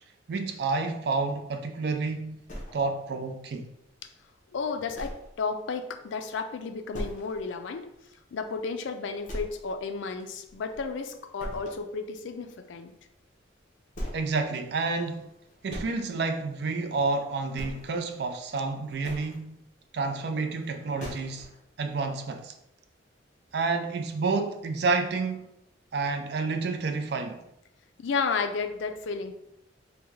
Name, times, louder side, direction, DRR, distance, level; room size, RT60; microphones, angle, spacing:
voice 1, 0.3-2.4 2.7-3.7 14.1-15.2 15.6-19.6 19.9-21.5 21.8-22.5 23.5-25.5 25.9-27.4, right 3 dB, 55° right, 0.3 m, -29 dB
sound 1, 2.5-3.2 3.7-3.8 4.2-4.3 4.9-5.4 5.7-5.8 6.2-6.3 6.9-7.5 7.8-7.9 8.4-8.5 9.3-9.9 10.2-11.0 11.4-11.9 13.2-13.3 13.9-14.3 15.3-15.9 16.9-17.1 17.5-18.1 18.8-19.4 20.6-20.7 21.0-21.5, equal, 40° left, 0.8 m, -39 dB
voice 2, 4.5-7.9 8.3-12.9 28.0-29.4, left 4 dB, 75° left, 0.4 m, -32 dB
3.4 x 2.2 x 3.1 m
head